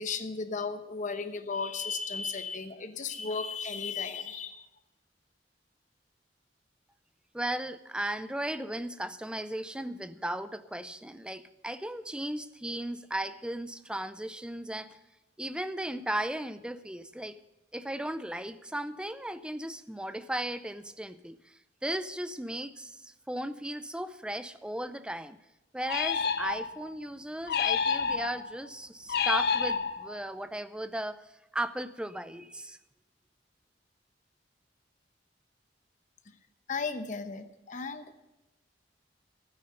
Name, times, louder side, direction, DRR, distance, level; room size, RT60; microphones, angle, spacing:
voice 1, 0.0-4.7 36.7-38.1, left 4 dB, 45° left, 8 dB, 1.0 m, -35 dB
voice 2, 7.3-15.0 15.4-17.4 17.7-25.4 25.7-31.2 31.5-32.8, right 1 dB, 5° right, 12 dB, 0.5 m, -36 dB
sound 1, 25.9-26.9 27.5-28.5 29.1-30.3, left 6 dB, 60° left, 0.8 m, -29 dB
13.0 x 9.5 x 6.6 m, 0.95 s
head